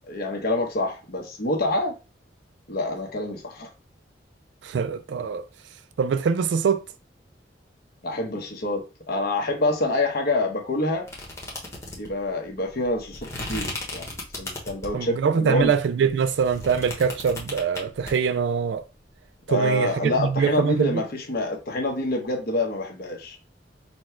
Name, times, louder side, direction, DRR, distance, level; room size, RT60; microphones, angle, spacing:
voice 1, 0.1-2.0 2.7-3.7 8.0-11.1 12.0-15.7 19.5-23.4, left 2 dB, 55° left, 1.0 m, -27 dB
voice 2, 4.6-5.5 6.0-6.8 14.9-18.8 19.5-21.0, right 6 dB, 70° right, 0.3 m, -23 dB
sound 1, 11.1-15.1 15.6-18.1, left 2 dB, 15° left, 1.1 m, -36 dB
4.2 x 2.2 x 4.4 m
head